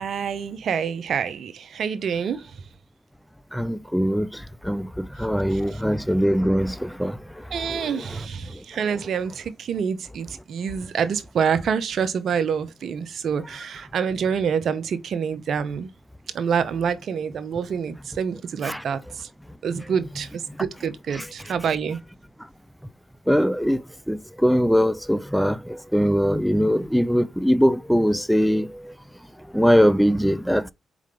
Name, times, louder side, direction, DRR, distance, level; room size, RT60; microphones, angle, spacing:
voice 1, 0.0-2.4 5.5-5.8 7.5-15.9 16.3-19.3 19.6-22.0, right 7 dB, 70° right, 0.7 m, -27 dB
voice 2, 3.5-7.2 7.5-8.2 18.6-18.8 21.1-21.3 23.3-23.8 24.1-28.9 29.5-30.7, equal, ahead, 0.4 m, -22 dB
4.2 x 3.6 x 3.4 m
supercardioid pair, 45°, 0 cm